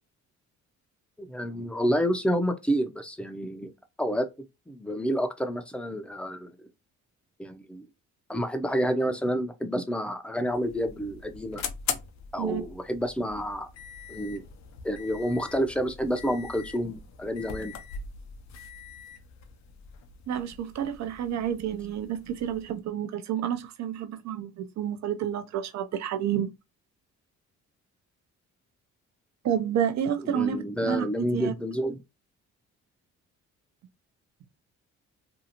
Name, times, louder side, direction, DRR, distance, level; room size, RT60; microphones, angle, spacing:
voice 1, 1.2-3.7 4.0-4.3 4.7-6.5 7.4-7.9 8.3-11.6 12.3-13.7 14.1-14.4 14.8-17.8 30.2-32.0, equal, 5° left, 0.5 m, -29 dB
sound 1, 10.4-22.8, left 7 dB, 65° left, 0.6 m, -42 dB
voice 2, 20.3-26.5 29.4-31.5, right 9 dB, 65° right, 0.6 m, -30 dB
2.6 x 2.4 x 2.8 m
cardioid pair, 90°, 30 cm